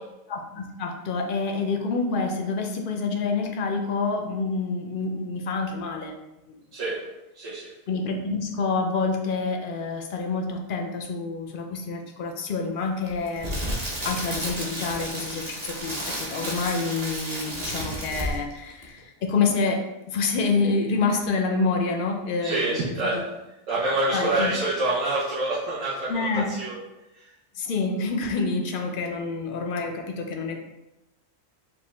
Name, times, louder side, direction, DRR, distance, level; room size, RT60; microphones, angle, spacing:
voice 1, 0.3-6.1 6.5-6.6 7.9-13.5 14.0-23.2 24.1-24.5 26.1-26.5 27.6-30.6, left 4 dB, 60° left, 3 dB, 0.5 m, -27 dB
voice 2, 7.3-7.7 22.4-23.2 23.7-26.8, right 2 dB, 70° right, -9 dB, 1.3 m, -26 dB
Crackle, 13.1-18.5 18.8-19.0, right 1 dB, 35° right, 0.9 m, -32 dB
5.2 x 2.4 x 3.3 m, 0.97 s
omnidirectional pair, 1.4 m